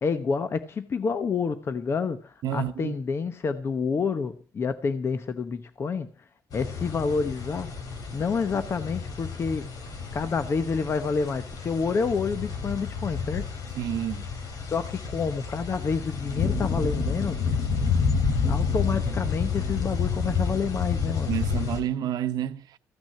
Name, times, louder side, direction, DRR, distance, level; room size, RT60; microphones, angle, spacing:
voice 1, 0.0-6.1 6.5-7.7 8.1-9.7 10.1-13.5 14.7-17.4 18.5-21.4, left 5 dB, 40° left, 1.0 m, -28 dB
voice 2, 2.4-3.0 13.8-14.3 21.2-22.8, right 10 dB, 80° right, 0.9 m, -29 dB
sound 1, 6.5-21.8, left 5 dB, 65° left, 3.4 m, -29 dB
15.5 x 6.1 x 9.1 m
cardioid pair, 140°, 7 cm